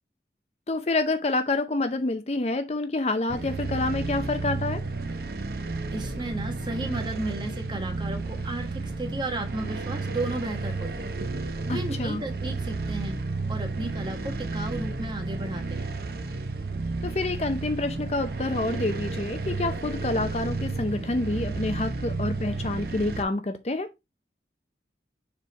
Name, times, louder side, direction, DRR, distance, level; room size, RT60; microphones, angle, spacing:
voice 1, 0.7-4.8 11.7-12.2 17.0-23.9, left 2 dB, 35° left, 0.5 m, -28 dB
sound 1, 3.3-23.2, right 3 dB, 55° right, 0.7 m, -32 dB
voice 2, 5.9-11.2 11.4-15.9, right 2 dB, 25° right, 1.3 m, -34 dB
6.7 x 3.6 x 4.1 m
head